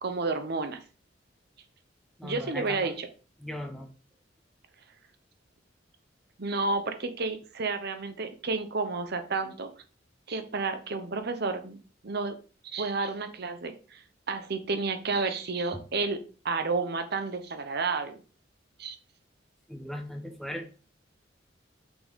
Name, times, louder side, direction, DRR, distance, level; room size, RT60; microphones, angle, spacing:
voice 1, 0.0-0.8 2.2-3.1 6.4-9.7 10.3-11.8 12.0-16.2 16.4-18.2 18.8-19.0, right 3 dB, 60° right, 8 dB, 0.9 m, -31 dB
voice 2, 2.2-2.8 3.4-3.9 15.7-15.8 19.7-20.7, left 1 dB, ahead, 4 dB, 1.1 m, -38 dB
6.1 x 6.0 x 3.6 m, 0.36 s
head